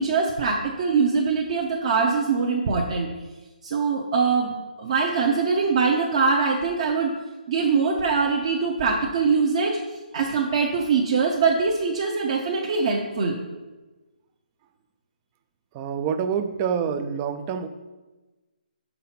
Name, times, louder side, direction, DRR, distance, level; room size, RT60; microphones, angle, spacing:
voice 1, 0.0-3.1 3.6-4.5 4.8-7.1 7.5-9.8 10.1-13.4, right 5 dB, 40° right, 0 dB, 0.7 m, -23 dB
voice 2, 15.7-17.7, right 7 dB, 20° right, 10 dB, 0.3 m, -26 dB
5.6 x 5.5 x 4.3 m, 1.2 s
hypercardioid pair, 160°, 5 cm